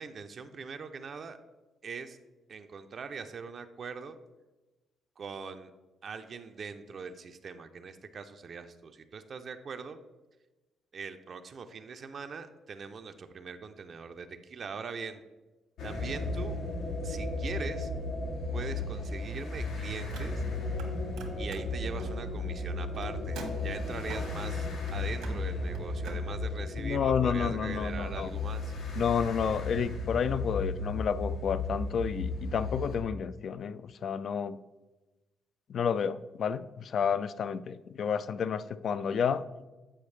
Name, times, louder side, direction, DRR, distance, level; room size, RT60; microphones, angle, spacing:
voice 1, 0.0-1.4 1.8-2.2 2.5-4.2 5.2-5.7 6.0-10.0 10.9-15.2 15.8-16.6 17.0-17.9 18.5-20.4 21.3-28.7, right 5 dB, 50° right, 8 dB, 0.4 m, -41 dB
sound 1, 15.8-33.0, left 2 dB, 80° left, 1.2 m, -35 dB
Car, 20.1-20.9 21.1-26.2, right 3 dB, 85° right, 1.2 m, -48 dB
voice 2, 26.8-28.3 29.0-34.6 35.7-39.4, left 7 dB, 60° left, 14 dB, 0.3 m, -30 dB
8.7 x 4.8 x 3.2 m, 1.1 s
cardioid pair, 90°, 0 cm